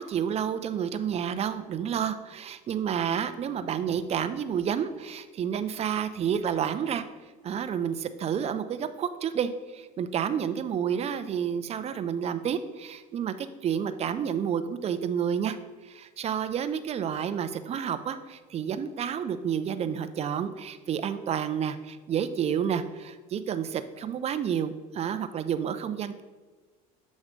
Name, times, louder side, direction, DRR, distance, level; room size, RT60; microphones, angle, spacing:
voice 1, 0.0-7.0 7.4-15.6 15.8-26.2, right 8 dB, 35° right, 11 dB, 0.5 m, -30 dB
7.4 x 3.1 x 5.1 m, 1.3 s
supercardioid pair, 95°, 18 cm